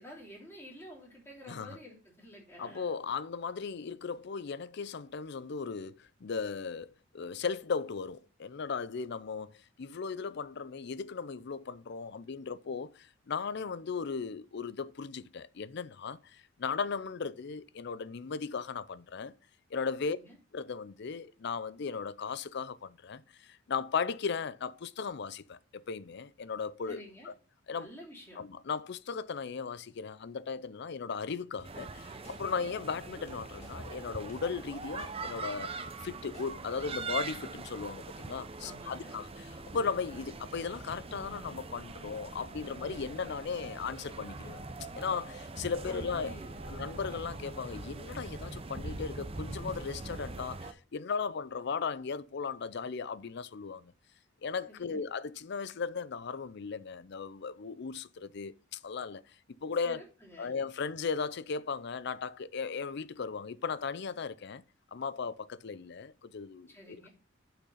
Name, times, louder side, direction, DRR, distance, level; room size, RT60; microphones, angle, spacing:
voice 1, 0.0-3.0 20.0-20.3 26.9-27.3 27.7-28.4 38.6-39.2 45.8-46.7 54.7-55.0 59.8-60.8 66.7-67.1, equal, 10° left, 3.1 m, -50 dB
voice 2, 2.6-19.3 19.7-20.2 20.5-27.0 27.2-27.3 27.7-27.9 28.4-35.7 36.0-44.6 44.9-46.3 46.7-53.9 54.4-59.2 59.6-60.0 60.4-64.6 64.9-67.1, left 5 dB, 55° left, 0.5 m, -37 dB
sound 1, 31.6-31.7 32.2-32.4 33.3-33.7 34.3-34.4 35.0-35.1 35.7-35.8 36.0-36.5 36.9-37.0, left 1 dB, 35° left, 2.2 m, -53 dB
sound 2, 31.6-50.7, right 3 dB, 30° right, 0.7 m, -42 dB
6.7 x 5.9 x 5.5 m
head